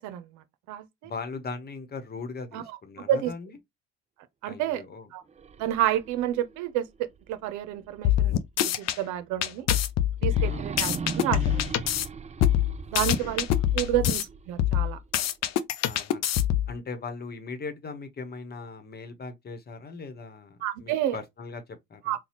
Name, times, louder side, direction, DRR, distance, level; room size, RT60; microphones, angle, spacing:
voice 1, 0.0-1.1 2.5-2.6 3.1-3.3 4.4-4.8 5.1-5.2 5.6-8.3 8.8-9.7 10.2-11.8 12.9-13.5 13.7-15.0 20.6-21.2 22.1-22.2, right 12 dB, 75° right, 0.7 m, -29 dB
voice 2, 1.0-3.6 4.5-5.1 10.4-10.7 12.9-13.4 13.9-14.0 15.8-16.2 16.7-22.1, left 4 dB, 35° left, 1.1 m, -39 dB
sound 1, 5.3-8.3 8.7-8.8 10.2-15.3, right 5 dB, 25° right, 0.4 m, -39 dB
sound 2, 8.0-9.0 9.4-12.1 12.4-14.2 14.6-16.7, left 11 dB, 60° left, 0.6 m, -24 dB
4.0 x 2.3 x 2.9 m
supercardioid pair, 80°, 29 cm